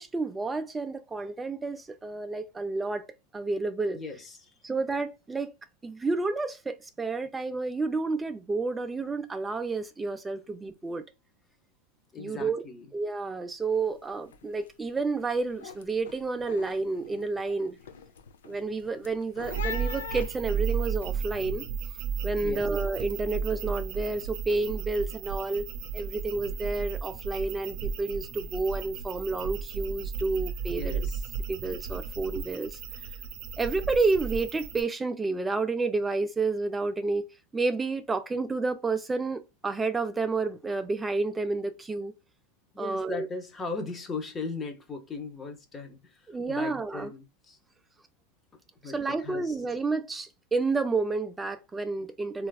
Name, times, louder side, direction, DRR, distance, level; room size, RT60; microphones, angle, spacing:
voice 1, 0.0-3.0 3.3-4.0 4.6-5.5 5.8-11.0 12.2-12.6 12.9-17.8 18.4-21.7 22.2-25.6 25.9-31.1 31.5-32.8 33.6-37.3 37.5-42.1 42.8-43.3 46.3-47.1 48.8-52.5, right 3 dB, 15° right, 0.3 m, -30 dB
voice 2, 3.9-4.5 12.1-12.9 22.4-22.7 30.7-31.3 42.7-47.6 48.8-49.6, left 4 dB, 25° left, 0.7 m, -38 dB
sound 1, 13.7-14.0 14.3-14.7 15.1-21.0, left 8 dB, 85° left, 0.4 m, -43 dB
sound 2, 19.4-34.8, right 6 dB, 55° right, 0.6 m, -34 dB
3.1 x 2.4 x 2.2 m
hypercardioid pair, 115°, 0 cm